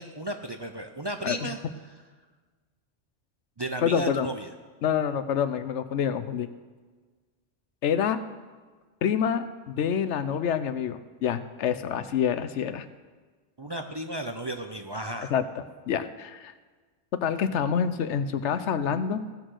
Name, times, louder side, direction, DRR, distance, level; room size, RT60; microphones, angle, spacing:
voice 1, 0.0-1.6 3.6-4.5 13.6-15.3, right 1 dB, 30° right, 5 dB, 0.5 m, -34 dB
voice 2, 3.8-4.3 4.8-6.5 7.8-8.2 9.0-12.9 15.3-15.4 15.9-16.5 17.2-19.2, left 8 dB, 85° left, 12 dB, 1.0 m, -27 dB
16.0 x 6.4 x 6.3 m, 1.4 s
omnidirectional pair, 1.2 m